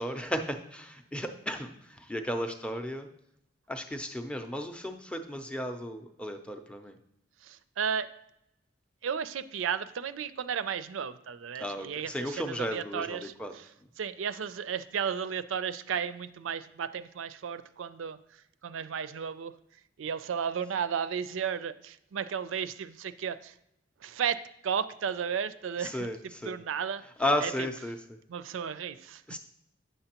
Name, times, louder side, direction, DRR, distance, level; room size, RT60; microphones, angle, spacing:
voice 1, 0.0-3.1 3.7-6.9 11.6-13.5 25.8-26.2 26.4-26.6 27.2-28.0 29.3-29.4, left 1 dB, 5° left, 6 dB, 0.5 m, -34 dB
voice 2, 7.4-8.1 9.0-13.7 14.0-18.2 18.6-19.6 20.0-23.5 24.0-27.0 27.4-27.7 28.3-29.4, right 7 dB, 85° right, 14 dB, 0.4 m, -34 dB
9.1 x 6.7 x 2.9 m, 0.79 s
head